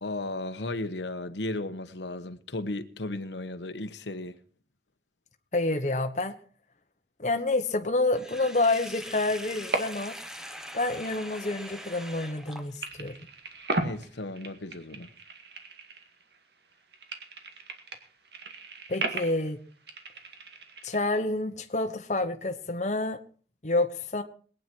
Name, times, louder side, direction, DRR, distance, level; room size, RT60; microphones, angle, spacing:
voice 1, 0.0-4.4 13.8-15.1, left 2 dB, 90° left, 1.2 m, -35 dB
voice 2, 5.5-6.3 7.2-10.2 10.7-13.2 18.9-19.6 20.8-23.2 23.6-24.2, left 2 dB, 40° left, 1.1 m, -28 dB
Sink (filling or washing), 8.1-13.0, equal, 5° right, 1.0 m, -42 dB
sound 1, 9.5-10.3 10.5-12.5 12.8-16.4 16.7-21.0, right 2 dB, 70° right, 2.0 m, -37 dB
21.5 x 9.2 x 4.6 m
head